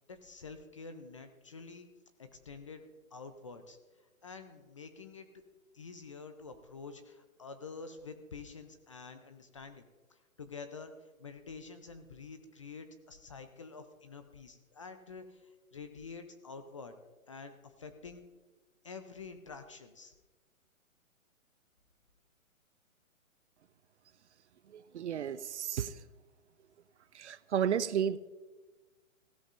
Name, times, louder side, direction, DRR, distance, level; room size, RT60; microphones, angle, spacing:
voice 1, 0.1-1.9 2.2-2.8 3.1-3.8 4.2-5.3 5.7-9.8 10.1-16.9 17.3-18.2 18.8-20.1, left 4 dB, 25° left, 8 dB, 0.5 m, -48 dB
voice 2, 24.7-25.9 27.1-28.2, right 8 dB, 55° right, 16 dB, 0.5 m, -32 dB
16.0 x 13.0 x 2.5 m, 1.2 s
hypercardioid pair, 145°, 41 cm